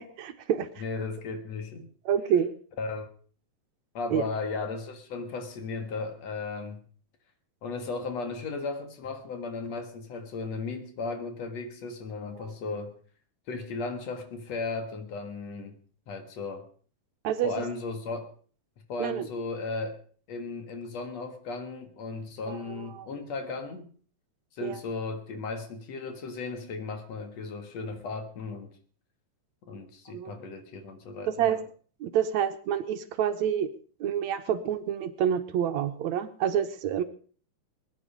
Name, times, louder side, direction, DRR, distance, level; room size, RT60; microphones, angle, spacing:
voice 1, 0.2-0.7 2.1-2.5 4.1-4.3 12.4-12.5 17.2-17.7 19.0-19.3 22.5-23.1 24.6-24.8 30.1-30.3 31.3-31.6 32.0-33.7 34.0-37.0, right 9 dB, 70° right, 9 dB, 2.2 m, -28 dB
voice 2, 0.8-1.9 2.8-3.1 3.9-6.8 7.6-13.0 13.5-15.8 16.1-16.7 17.4-18.3 18.9-20.0 20.3-23.9 24.5-28.7 29.7-31.6, left 3 dB, 60° left, 7 dB, 2.8 m, -35 dB
20.5 x 10.5 x 5.2 m, 0.44 s
omnidirectional pair, 3.5 m